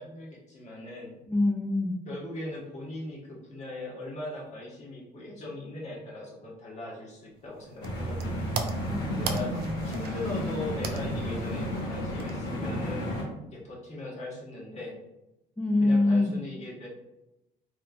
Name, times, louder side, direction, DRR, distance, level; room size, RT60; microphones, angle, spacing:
voice 1, 0.0-1.2 2.1-8.5 9.2-9.5 9.8-13.1 13.4-14.9 15.8-16.9, left 2 dB, 40° left, -4 dB, 1.3 m, -39 dB
voice 2, 1.3-2.0 8.9-9.2 9.5-9.8 15.6-16.3, left 2 dB, 5° left, 0 dB, 0.3 m, -25 dB
sound 1, 7.4-12.7, right 5 dB, 65° right, 0.4 m, -40 dB
sound 2, 7.8-13.2, equal, 75° left, 1.1 m, -32 dB
3.1 x 3.0 x 2.5 m, 0.93 s
cardioid pair, 110°, 17 cm